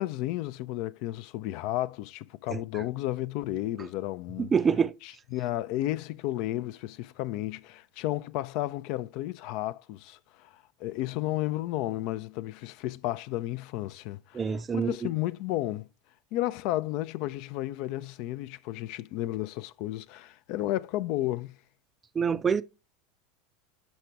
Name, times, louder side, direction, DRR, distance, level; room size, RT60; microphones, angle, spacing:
voice 1, 0.0-4.5 5.0-15.9 16.3-21.6, left 15 dB, 60° left, 0.3 m, -33 dB
voice 2, 4.4-4.9 14.3-15.1 22.2-22.6, right 6 dB, 25° right, 0.4 m, -26 dB
5.8 x 5.2 x 4.6 m
hypercardioid pair, 90°, 0 cm